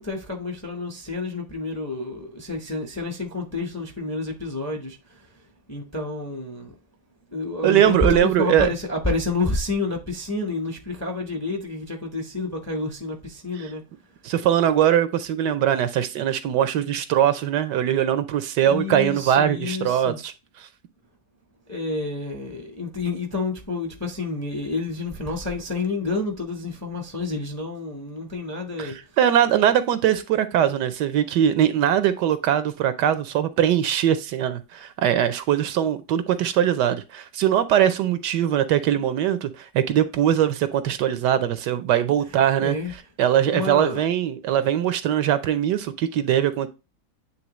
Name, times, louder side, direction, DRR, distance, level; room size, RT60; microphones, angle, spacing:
voice 1, 0.0-5.3 5.7-6.7 7.3-13.8 18.7-20.2 21.7-29.0 42.6-42.9 43.5-44.0, left 3 dB, 15° left, 0.7 m, -29 dB
voice 2, 7.6-8.7 14.2-20.3 20.6-20.7 28.8-42.8 43.2-46.7, right 10 dB, 75° right, 1.2 m, -21 dB
9.2 x 3.4 x 3.0 m
omnidirectional pair, 2.0 m